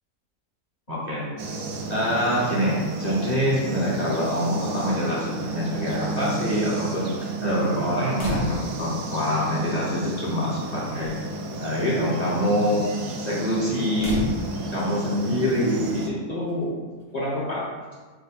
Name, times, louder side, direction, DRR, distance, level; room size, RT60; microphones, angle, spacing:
voice 1, 0.9-1.3 1.9-11.2 11.6-12.9 13.2-14.2 14.7-16.8 17.1-17.7, equal, 30° left, -8 dB, 0.9 m, -25 dB
sound 1, 1.4-16.1, right 3 dB, 70° right, 1.0 m, -33 dB
sound 2, 8.2-8.9 10.0-10.1 10.4-10.7 11.0-11.3 14.0-14.9 16.5-16.6, equal, 85° left, 1.7 m, -30 dB
4.7 x 2.2 x 4.2 m, 1.4 s
omnidirectional pair, 1.7 m